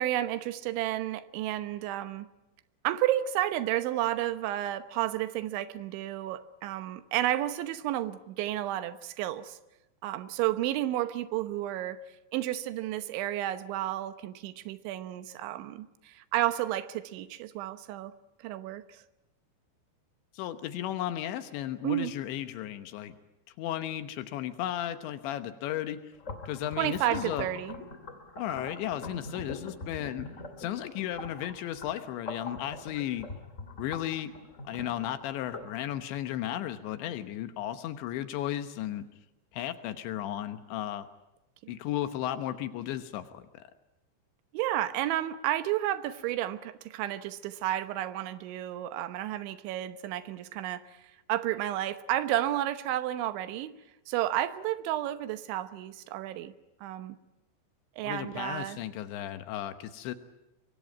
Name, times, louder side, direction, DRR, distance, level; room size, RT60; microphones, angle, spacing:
voice 1, 0.0-2.3 2.8-9.6 10.0-12.0 12.3-18.1 18.4-19.0 21.8-22.1 26.8-27.7 41.6-41.7 44.5-51.0 51.3-53.7 54.1-56.5 56.8-57.2 58.0-58.8, right 13 dB, 85° right, 12 dB, 3.4 m, -31 dB
voice 2, 20.3-23.1 23.6-26.0 26.5-27.5 28.4-30.3 30.6-33.3 33.8-34.3 34.7-39.1 39.5-41.1 41.7-43.6 58.0-60.1, left 12 dB, 80° left, 10 dB, 3.3 m, -34 dB
sound 1, 26.1-35.7, left 2 dB, 25° left, 1.7 m, -43 dB
24.5 x 22.5 x 9.4 m, 0.93 s
omnidirectional pair, 5.3 m